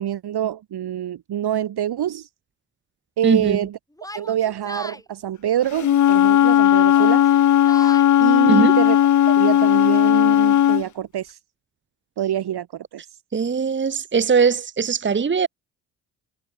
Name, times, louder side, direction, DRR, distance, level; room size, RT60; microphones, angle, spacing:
voice 1, 0.0-2.3 3.2-3.7 4.1-7.2 8.2-9.0 9.4-11.4 12.2-12.7 12.9-13.0, right 11 dB, 60° right, 2.3 m, -25 dB
voice 2, 3.2-3.6 8.5-8.8 13.3-15.5, right 5 dB, 25° right, 1.2 m, -20 dB
Yell, 4.0-5.0 6.1-6.5 6.9-8.1, left 1 dB, 10° left, 6.4 m, -37 dB
Wind instrument woodwind instrument, 5.8-10.8, left 10 dB, 40° left, 0.8 m, -16 dB
hypercardioid pair, 55°, 45 cm